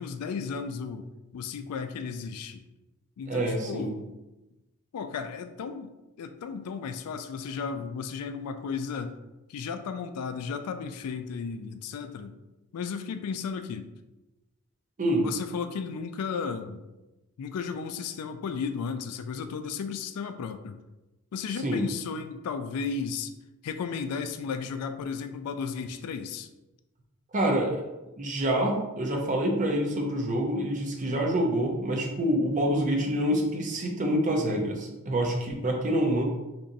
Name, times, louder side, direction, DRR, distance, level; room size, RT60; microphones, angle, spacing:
voice 1, 0.0-2.6 3.2-4.1 4.9-5.9 6.2-9.2 9.5-12.4 12.7-13.9 15.2-16.8 17.4-20.8 21.3-23.3 23.6-26.5, left 5 dB, 80° left, 9 dB, 0.3 m, -34 dB
voice 2, 3.3-3.9 15.0-15.3 21.6-21.8 27.3-27.9 28.2-36.2, right 1 dB, 35° right, 0 dB, 0.6 m, -26 dB
3.8 x 3.0 x 2.6 m, 1.0 s
head